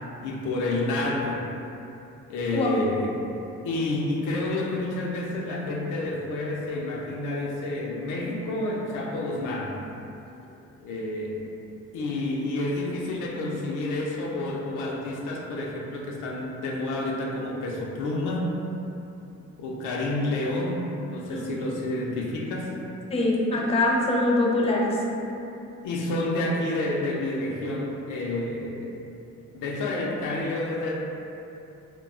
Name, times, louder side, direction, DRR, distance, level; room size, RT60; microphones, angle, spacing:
voice 1, 0.2-1.4 2.3-3.2 3.6-9.8 10.8-11.4 11.9-18.5 19.6-22.7 25.8-28.9 29.5-30.9, left 2 dB, 85° left, -2 dB, 0.5 m, -29 dB
voice 2, 23.1-24.9, left 2 dB, 20° left, -2 dB, 0.4 m, -23 dB
2.3 x 2.2 x 3.6 m, 2.8 s
cardioid pair, 90°, 30 cm